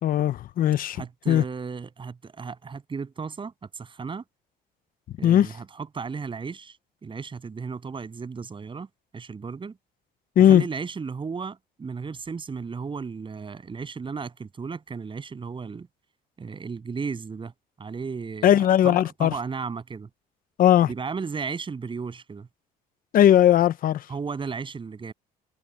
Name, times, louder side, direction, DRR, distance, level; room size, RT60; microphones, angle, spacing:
voice 1, 0.0-1.4 5.2-5.5 10.4-10.6 18.4-19.4 20.6-20.9 23.1-24.0, left 11 dB, 55° left, 0.8 m, -18 dB
voice 2, 0.9-4.2 5.2-6.8 7.0-8.9 9.1-9.8 10.4-15.9 16.4-17.5 17.8-20.1 20.8-22.5 24.1-25.1, right 5 dB, 30° right, 8.0 m, -34 dB
cardioid pair, 110°, 17 cm